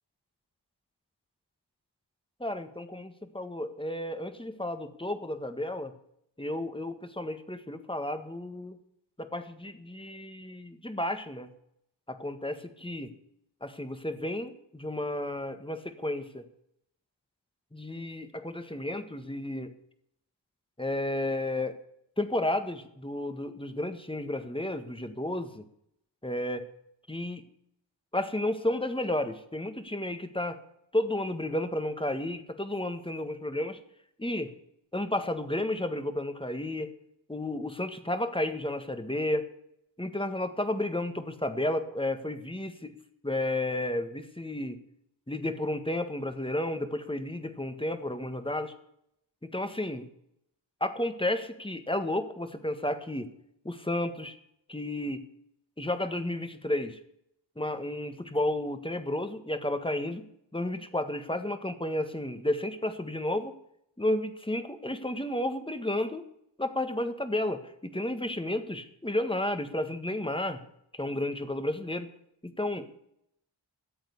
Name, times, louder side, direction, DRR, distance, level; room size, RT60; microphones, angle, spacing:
voice 1, 2.4-5.9 6.4-8.8 9.2-11.5 12.1-13.1 13.6-16.5 17.7-19.7 20.8-21.8 22.2-25.6 26.2-26.6 27.1-27.4 28.1-30.6 30.9-33.8 34.2-34.5 34.9-36.9 37.3-39.5 40.0-43.0 43.2-44.8 45.3-48.7 49.4-50.0 50.8-53.3 53.6-54.3 54.7-55.2 55.8-57.0 57.6-60.2 60.5-63.5 64.0-66.2 66.6-70.6 70.9-72.1 72.4-72.9, left 1 dB, 10° left, 8 dB, 1.6 m, -32 dB
14.0 x 8.1 x 8.2 m, 0.74 s
wide cardioid pair, 60°, 46 cm